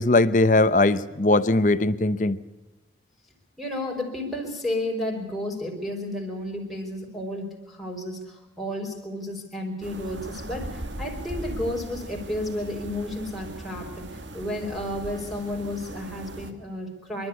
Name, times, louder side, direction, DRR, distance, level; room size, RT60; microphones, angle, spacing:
voice 1, 0.0-2.4, left 2 dB, 45° left, 0.8 m, -20 dB
voice 2, 3.6-17.3, left 1 dB, ahead, 4.4 m, -32 dB
sound 1, 9.8-16.5, right 1 dB, 85° right, 1.8 m, -38 dB
25.5 x 12.0 x 9.6 m
head